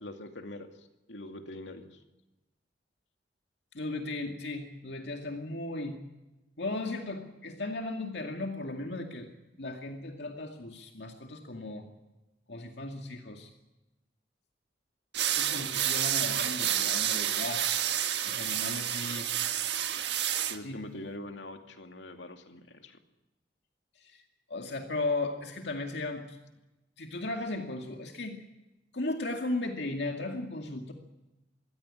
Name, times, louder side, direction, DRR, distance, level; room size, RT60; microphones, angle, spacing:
voice 1, 0.0-0.7 1.1-2.0 20.5-23.0, left 1 dB, 85° left, 5 dB, 2.5 m, -43 dB
voice 2, 3.7-6.0 6.6-9.3 9.6-11.8 12.5-13.5 15.3-17.7 18.2-19.3 20.6-20.9 24.0-24.2 24.5-26.4 27.0-28.4 28.9-30.9, left 2 dB, 70° left, 3 dB, 2.2 m, -36 dB
sound 1, 15.1-20.6, right 10 dB, 70° right, 1.5 m, -29 dB
23.5 x 16.5 x 9.8 m, 1.0 s
head